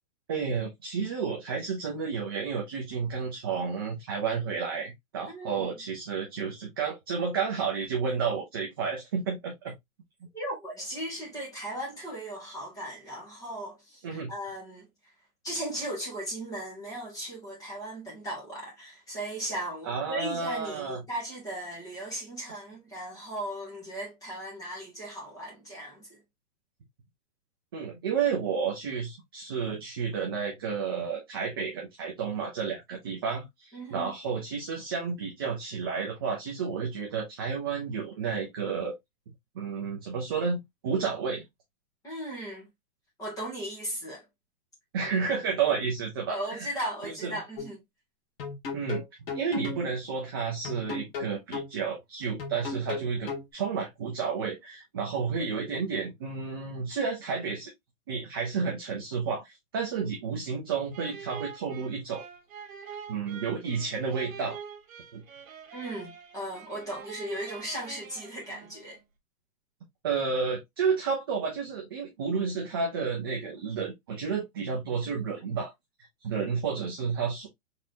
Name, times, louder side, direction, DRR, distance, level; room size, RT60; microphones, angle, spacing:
voice 1, 0.3-9.7 14.0-14.3 19.9-21.0 27.7-39.0 39.5-41.4 44.9-46.7 47.0-47.4 48.7-49.0 49.3-57.7 58.1-62.2 63.1-64.6 65.1-65.2 70.0-75.7 76.2-77.5, right 5 dB, 20° right, 0.5 m, -31 dB
voice 2, 5.2-5.7 10.3-14.9 15.4-26.2 33.7-34.1 42.0-42.7 43.2-44.3 45.7-45.8 46.3-47.8 65.7-69.0, right 1 dB, 10° left, 1.7 m, -37 dB
sound 1, 47.6-47.7 48.4-49.8 50.6-51.7 52.4-53.5, left 4 dB, 45° left, 1.8 m, -35 dB
sound 2, 60.9-69.0, right 7 dB, 80° right, 1.3 m, -45 dB
4.1 x 3.7 x 2.6 m
hypercardioid pair, 170°, 40 cm